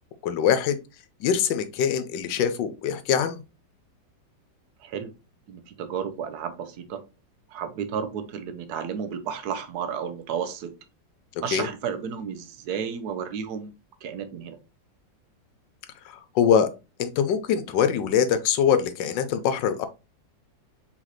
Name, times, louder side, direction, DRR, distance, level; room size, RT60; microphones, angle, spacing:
voice 1, 0.2-0.8 1.2-3.4 11.5-11.7 16.0-16.7 17.0-19.9, left 8 dB, 75° left, 1.3 m, -23 dB
voice 2, 4.8-5.1 5.5-7.0 7.5-10.7 11.4-13.7 14.0-14.6, right 7 dB, 65° right, 1.1 m, -32 dB
4.0 x 3.9 x 3.1 m
omnidirectional pair, 2.0 m